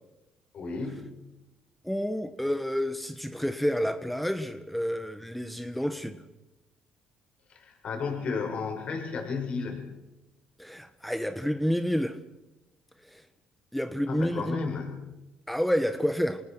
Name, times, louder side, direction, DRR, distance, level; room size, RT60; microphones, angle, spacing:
voice 1, 0.5-1.1 7.5-9.8 14.1-15.1, left 5 dB, 55° left, 2 dB, 7.3 m, -33 dB
voice 2, 1.8-6.2 10.6-12.2 13.1-13.2 13.7-14.7 15.5-16.4, equal, 5° left, 9 dB, 1.4 m, -29 dB
27.5 x 19.0 x 6.2 m, 0.99 s
supercardioid pair, 75°, 2 cm